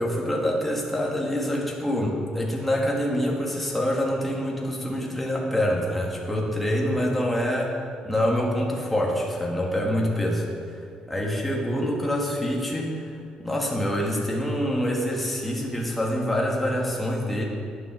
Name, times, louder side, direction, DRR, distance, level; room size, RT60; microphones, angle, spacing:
voice 1, 0.0-7.7 8.0-17.4, equal, 5° left, -3 dB, 1.6 m, -26 dB
11.5 x 9.1 x 6.1 m, 2.3 s
cardioid pair, 155°, 2 cm